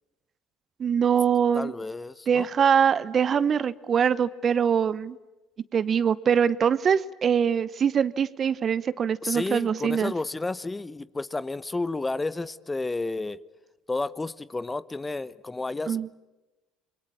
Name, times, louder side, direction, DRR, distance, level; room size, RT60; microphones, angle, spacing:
voice 1, 0.8-1.7 2.3-5.2 5.7-10.1 15.9-16.1, right 7 dB, 45° right, 17 dB, 1.0 m, -23 dB
voice 2, 1.5-2.5 9.2-13.4 13.9-16.1, left 3 dB, 20° left, 17 dB, 1.0 m, -31 dB
28.0 x 22.5 x 8.8 m, 1.1 s
hypercardioid pair, 60°, 0 cm